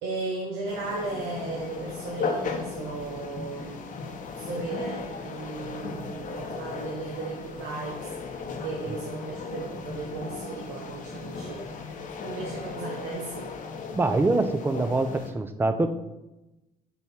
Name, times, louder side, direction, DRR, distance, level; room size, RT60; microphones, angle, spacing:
voice 1, 0.0-3.8 4.4-12.0 12.2-13.6, right 3 dB, 90° right, -1 dB, 1.0 m, -36 dB
sound 1, 0.7-15.3, left 4 dB, 50° left, 0.8 m, -36 dB
voice 2, 13.9-15.1 15.3-15.9, right 2 dB, 15° right, 8 dB, 0.5 m, -24 dB
5.5 x 4.7 x 4.3 m, 0.99 s
cardioid pair, 110°, 17 cm